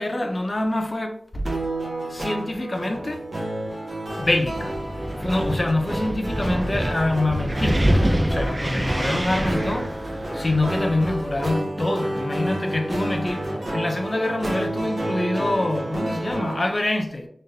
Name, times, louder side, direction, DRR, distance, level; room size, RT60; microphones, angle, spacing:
voice 1, 0.0-1.5 2.1-3.2 4.2-4.8 5.2-9.9 10.3-13.4 13.7-17.3, left 2 dB, 35° left, 0.7 m, -25 dB
sound 1, 1.4-16.7, right 1 dB, 50° right, 1.4 m, -30 dB
Wind, 4.2-11.5, equal, 20° right, 0.5 m, -26 dB
4.0 x 3.5 x 2.7 m
wide cardioid pair, 60°, 0 cm